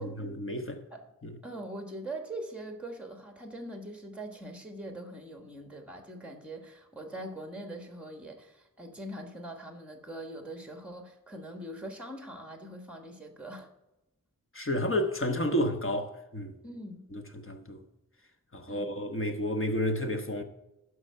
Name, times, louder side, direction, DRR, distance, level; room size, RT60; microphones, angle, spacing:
voice 1, 0.0-0.9 1.2-1.3 14.5-16.6 17.1-17.8 18.5-20.4, equal, 40° left, 1.2 m, -31 dB
voice 2, 1.4-13.7 16.6-17.0 18.7-18.9, right 1 dB, 5° right, 1.4 m, -42 dB
12.0 x 4.7 x 5.6 m
wide cardioid pair, 45°, 34 cm